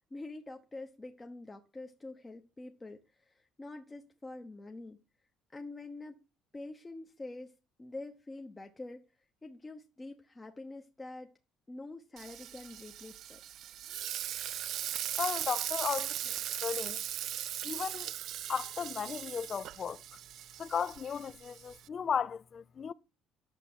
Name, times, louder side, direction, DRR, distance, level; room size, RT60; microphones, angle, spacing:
voice 1, 0.1-5.0 5.5-6.2 6.5-11.3 11.7-13.4, left 2 dB, 15° left, 1.0 m, -46 dB
Frying (food), 12.2-21.9, right 12 dB, 60° right, 0.5 m, -39 dB
voice 2, 15.2-16.3 16.6-17.0 17.6-18.1 18.5-20.0 20.6-22.9, left 7 dB, 35° left, 0.6 m, -35 dB
9.9 x 6.9 x 6.2 m
cardioid pair, 135°, 0 cm